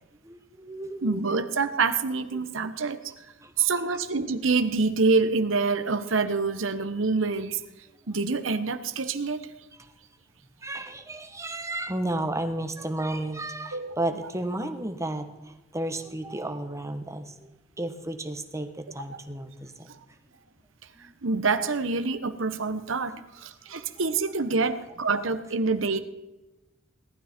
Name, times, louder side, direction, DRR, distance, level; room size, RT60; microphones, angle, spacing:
voice 1, 0.2-1.4 2.3-2.4 3.4-4.0 9.8-9.9 10.6-17.5 17.8-19.9 20.3-20.4 21.0-21.1 23.8-23.9 24.6-24.8 25.8-25.9, right 1 dB, 15° right, 8 dB, 1.3 m, -33 dB
voice 2, 1.0-3.0 3.6-7.6 8.1-9.5 13.7-14.0 21.2-26.0, right 4 dB, 75° right, 10 dB, 1.2 m, -26 dB
18.5 x 12.5 x 4.5 m, 1.0 s
head